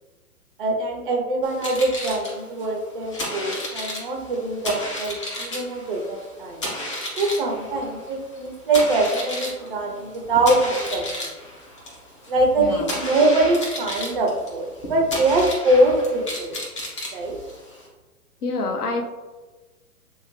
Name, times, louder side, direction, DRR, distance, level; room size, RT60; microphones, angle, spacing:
voice 1, 0.6-6.6 7.2-11.3 12.3-16.6 17.1-17.4, right 2 dB, 35° right, 1 dB, 0.5 m, -23 dB
sound 1, 1.4-17.9, left 1 dB, 20° left, 0.4 m, -33 dB
voice 2, 18.4-19.0, left 3 dB, 80° left, 3 dB, 0.7 m, -26 dB
2.9 x 2.7 x 3.0 m, 1.2 s
hypercardioid pair, 125°, 46 cm